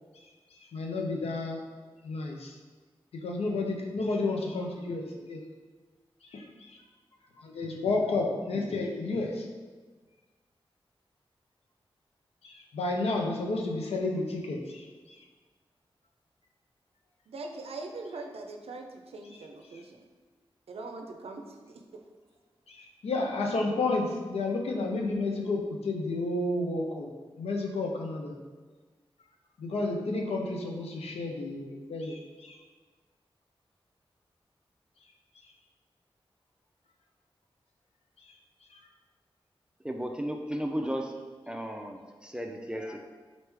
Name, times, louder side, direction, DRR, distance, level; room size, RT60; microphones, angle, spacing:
voice 1, 0.7-1.6 2.0-2.5 3.1-5.4 6.3-6.8 7.4-9.5 12.4-15.2 19.3-19.4 22.7-27.1 27.4-28.4 29.6-32.6, left 2 dB, 85° left, 1 dB, 0.5 m, -31 dB
voice 2, 17.3-20.0 20.7-21.8, right 3 dB, 75° right, 4 dB, 0.5 m, -42 dB
voice 3, 39.8-41.2 41.5-43.0, equal, 10° right, 2 dB, 0.4 m, -34 dB
4.0 x 3.1 x 3.4 m, 1.4 s
cardioid pair, 40°, 10 cm